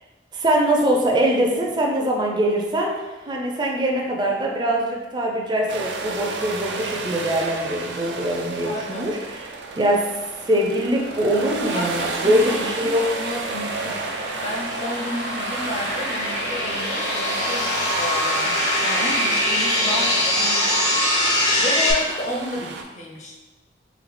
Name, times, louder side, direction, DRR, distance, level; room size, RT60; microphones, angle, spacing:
voice 1, 0.3-9.2 9.7-10.1 10.4-13.1, right 1 dB, 25° right, -1 dB, 0.5 m, -22 dB
sound 1, 5.7-22.8, right 4 dB, 85° right, 0.5 m, -31 dB
voice 2, 8.6-9.1 11.7-14.2 14.4-23.4, left 1 dB, 40° left, 0 dB, 0.6 m, -32 dB
sound 2, 11.1-21.9, left 1 dB, 65° left, 1.4 m, -24 dB
3.9 x 2.8 x 3.4 m, 1.1 s
head